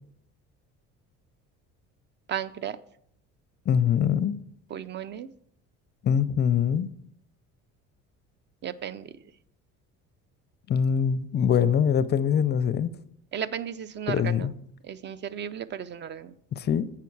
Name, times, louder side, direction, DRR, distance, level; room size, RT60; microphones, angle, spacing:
voice 1, 2.3-2.8 4.7-5.3 8.6-9.1 13.3-14.5 14.8-16.3, right 9 dB, 35° right, 0.4 m, -34 dB
voice 2, 3.7-4.4 6.0-6.9 10.7-12.9 14.1-14.5 16.5-16.9, left 8 dB, 30° left, 0.5 m, -23 dB
8.2 x 5.7 x 4.6 m
cardioid pair, 100°, 33 cm